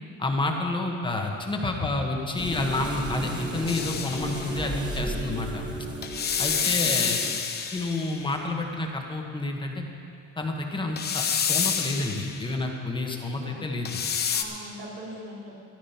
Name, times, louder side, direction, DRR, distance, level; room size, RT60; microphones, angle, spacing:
voice 1, 0.2-5.6 6.4-7.2 7.7-9.8 10.4-14.0, left 2 dB, 15° left, 1 dB, 1.2 m, -29 dB
sound 1, 2.3-7.4, right 1 dB, 15° right, 1.6 m, -34 dB
sound 2, 3.7-4.5 6.0-8.3 11.0-12.4 13.8-14.4, left 7 dB, 30° left, 0.8 m, -28 dB
voice 2, 6.5-7.1 13.2-13.6 14.3-15.6, right 1 dB, 85° right, -5 dB, 3.7 m, -42 dB
13.5 x 11.5 x 5.7 m, 2.5 s
cardioid pair, 155°, 33 cm